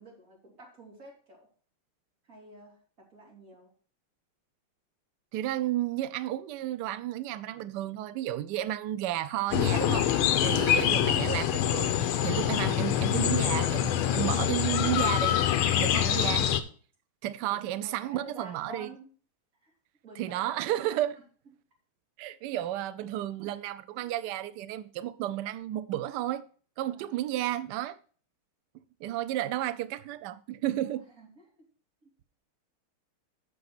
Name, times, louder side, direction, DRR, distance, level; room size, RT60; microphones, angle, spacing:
voice 1, 0.0-1.5 2.3-3.7 10.4-10.8 16.0-16.3 17.5-19.1 19.6-19.7 20.0-21.1 26.9-27.1 30.8-31.4 32.0-32.1, right 2 dB, 40° right, 3.3 m, -50 dB
voice 2, 5.3-10.1 10.4-12.0 12.2-15.4 15.7-16.5 17.2-18.9 20.2-21.2 22.2-26.4 26.8-28.0 29.0-31.1, right 13 dB, 90° right, 0.9 m, -32 dB
sound 1, 9.5-16.6, left 11 dB, 80° left, 1.6 m, -25 dB
6.8 x 6.7 x 6.0 m
omnidirectional pair, 2.4 m